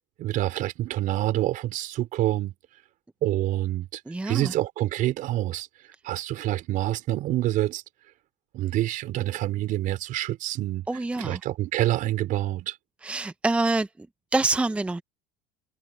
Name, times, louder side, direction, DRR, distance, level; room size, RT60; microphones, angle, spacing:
voice 1, 0.2-2.5 3.2-5.7 6.0-7.8 8.5-10.9 11.2-12.8, right 15 dB, 55° right, 4.3 m, -27 dB
voice 2, 4.1-4.5 10.9-11.4 13.0-13.9 14.3-15.0, right 2 dB, 5° right, 0.7 m, -26 dB
supercardioid pair, 120°, 17 cm